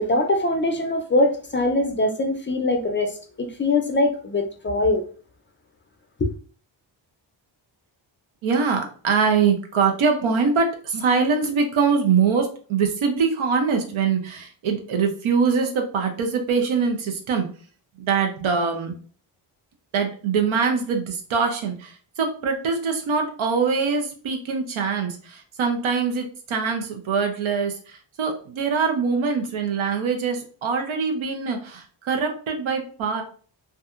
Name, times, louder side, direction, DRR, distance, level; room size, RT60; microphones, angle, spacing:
voice 1, 0.0-5.0 6.2-6.3, left 2 dB, 25° left, 0.4 m, -22 dB
voice 2, 8.4-17.5 18.0-18.9 19.9-33.2, right 5 dB, 80° right, 0.7 m, -23 dB
2.7 x 2.4 x 2.4 m
cardioid pair, 80°, 47 cm